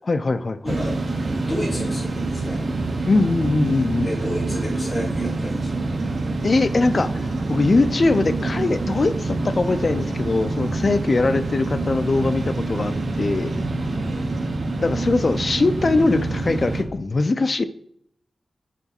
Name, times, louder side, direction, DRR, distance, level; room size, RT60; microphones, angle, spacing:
voice 1, 0.1-0.8 3.1-4.1 6.4-7.1 7.5-13.5 14.8-17.6, left 3 dB, 45° left, 11 dB, 0.4 m, -21 dB
voice 2, 0.6-1.0 1.3-2.6 4.0-5.8 14.0-14.2, equal, 25° left, -4 dB, 2.5 m, -31 dB
sound 1, 0.6-16.8, right 2 dB, 60° right, 0.7 m, -26 dB
5.9 x 3.9 x 4.3 m, 0.69 s
wide cardioid pair, 135°, 0 cm